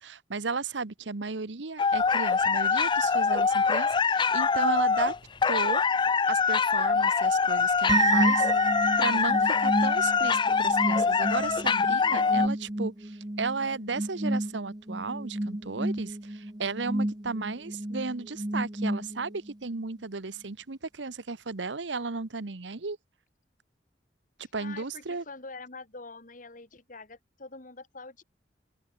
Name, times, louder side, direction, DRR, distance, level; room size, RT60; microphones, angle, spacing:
voice 1, 0.0-5.1 5.5-5.8 6.3-8.5 9.0-23.0 24.5-25.2, right 4 dB, 90° right, 1.1 m, -34 dB
sound 1, 1.8-12.5, left 5 dB, 25° left, 0.4 m, -24 dB
sound 2, 7.9-19.5, right 1 dB, 25° right, 1.3 m, -30 dB
voice 2, 24.4-28.2, left 3 dB, 45° left, 2.6 m, -45 dB
open air
head